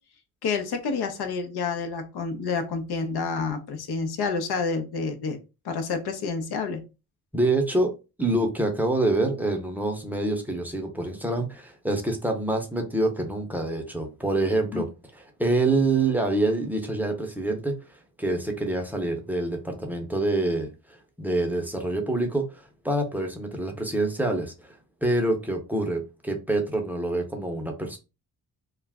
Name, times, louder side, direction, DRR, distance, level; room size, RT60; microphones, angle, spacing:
voice 1, 0.4-5.4 5.6-6.8 14.7-14.8, left 4 dB, 75° left, 0.7 m, -29 dB
voice 2, 7.3-7.9 8.2-14.9 15.4-20.7 21.2-24.7 25.0-28.0, right 2 dB, 5° right, 0.6 m, -26 dB
2.3 x 2.0 x 3.4 m
cardioid pair, 90°, 39 cm